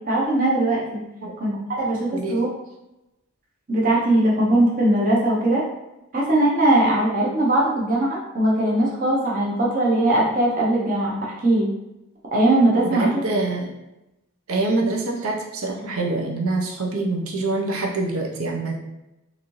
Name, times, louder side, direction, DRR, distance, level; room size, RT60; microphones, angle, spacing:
voice 1, 0.1-1.0 1.4-2.5 3.7-5.6 6.1-11.7 12.3-13.2, right 1 dB, 40° right, -4 dB, 0.8 m, -20 dB
voice 2, 2.1-2.4 12.9-13.7 14.5-18.8, right 2 dB, 75° right, 1 dB, 0.7 m, -25 dB
4.1 x 2.6 x 3.1 m, 0.93 s
head